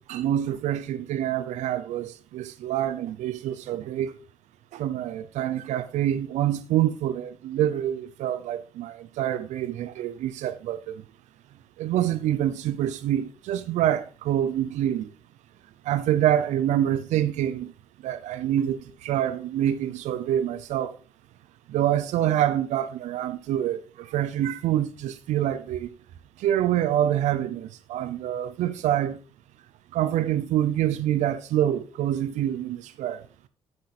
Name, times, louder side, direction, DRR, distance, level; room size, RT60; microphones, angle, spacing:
voice 1, 0.0-4.1 4.7-11.0 11.8-15.1 15.8-17.7 18.0-21.0 21.7-25.9 26.4-29.2 29.9-33.2, right 11 dB, 90° right, 0.6 m, -26 dB
9.7 x 6.6 x 4.2 m
cardioid pair, 105°, 12 cm